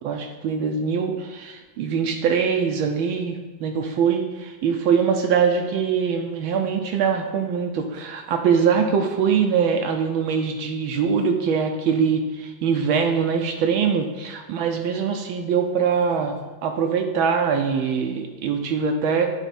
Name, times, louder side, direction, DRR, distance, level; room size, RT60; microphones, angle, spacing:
voice 1, 0.0-19.3, right 6 dB, 80° right, 4 dB, 1.3 m, -23 dB
9.0 x 3.6 x 4.2 m, 1.3 s
omnidirectional pair, 2.4 m